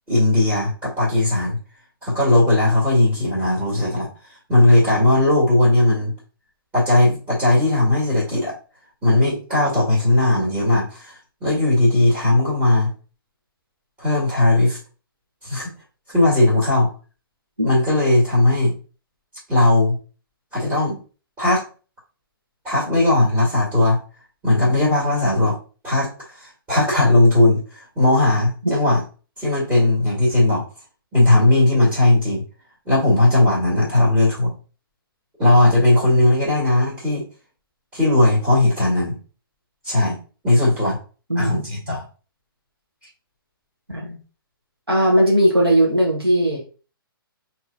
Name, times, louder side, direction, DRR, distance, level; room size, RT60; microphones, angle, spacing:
voice 1, 0.1-1.6 2.0-4.1 4.5-6.1 6.7-8.5 9.0-12.9 14.0-14.8 15.4-15.7 16.1-16.9 17.6-18.7 19.5-20.0 20.5-21.0 21.4-21.6 22.6-24.0 24.4-25.6 25.8-29.0 29.4-30.6 31.1-32.4 32.9-34.5 35.4-37.2 37.9-39.2 39.8-40.2 40.4-41.0 41.4-42.0, left 2 dB, 15° right, -7 dB, 2.1 m, -17 dB
voice 2, 41.3-41.7 43.9-44.2 44.9-46.6, equal, 85° right, -3 dB, 1.2 m, -18 dB
5.8 x 3.0 x 2.6 m, 0.36 s
figure-of-eight pair, 120°, 12 cm